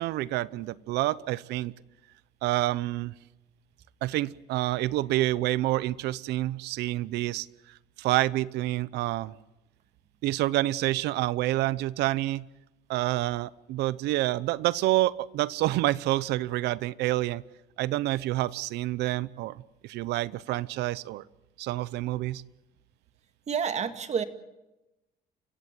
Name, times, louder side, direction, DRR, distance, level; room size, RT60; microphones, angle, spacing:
voice 1, 0.0-1.7 2.4-3.1 4.0-7.5 8.0-9.3 10.2-12.5 12.9-17.4 17.8-21.2 21.6-22.4, right 16 dB, 85° right, 20 dB, 0.8 m, -28 dB
voice 2, 23.5-24.2, right 7 dB, 40° right, 9 dB, 2.1 m, -29 dB
29.5 x 16.0 x 7.6 m, 0.99 s
cardioid pair, 110°, 17 cm